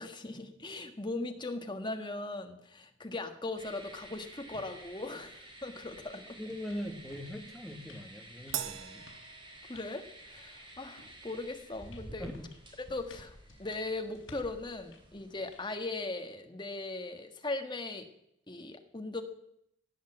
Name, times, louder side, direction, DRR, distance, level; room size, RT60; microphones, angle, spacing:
voice 1, 0.0-6.4 9.7-12.3 12.8-18.1 18.5-19.2, left 2 dB, 25° left, 6 dB, 1.4 m, -39 dB
sound 1, 3.6-15.8, right 1 dB, 25° right, 3.7 m, -52 dB
sound 2, 4.5-15.6, left 2 dB, 70° left, 3.9 m, -59 dB
voice 2, 6.4-9.1 12.2-12.5, equal, ahead, 3 dB, 1.7 m, -41 dB
Crash cymbal, 8.5-10.2, right 10 dB, 85° right, 0.9 m, -40 dB
17.0 x 8.2 x 7.9 m, 0.76 s
head